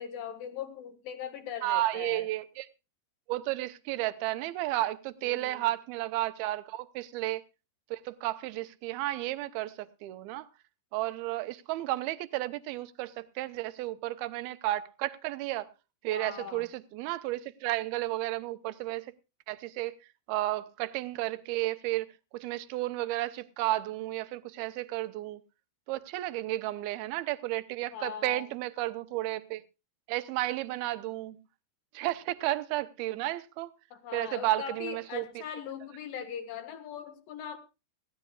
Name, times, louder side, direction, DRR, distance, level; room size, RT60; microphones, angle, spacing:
voice 1, 0.0-2.3 5.2-5.6 16.1-16.7 27.9-28.4 33.9-37.6, left 8 dB, 65° left, 3.0 m, -40 dB
voice 2, 1.6-2.7 3.3-7.4 7.9-10.5 10.9-15.7 16.0-19.1 19.5-20.0 20.3-22.1 22.3-25.4 25.9-29.6 30.1-31.4 31.9-33.7 34.1-35.3, right 16 dB, 80° right, 2.6 m, -32 dB
20.0 x 16.0 x 2.3 m
omnidirectional pair, 4.6 m